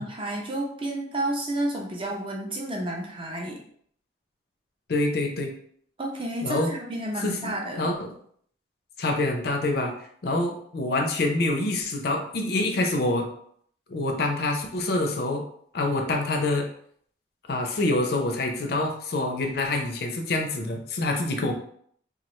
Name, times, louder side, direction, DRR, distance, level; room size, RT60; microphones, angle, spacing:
voice 1, 0.0-3.6 6.0-7.9, right 1 dB, 30° right, -1 dB, 0.5 m, -31 dB
voice 2, 4.9-5.5 6.4-6.7 7.2-8.1 9.0-9.9 10.2-13.3 13.9-15.4 15.7-16.7 17.5-21.5, left 2 dB, 55° left, 3 dB, 0.4 m, -26 dB
3.0 x 2.4 x 3.0 m, 0.63 s
head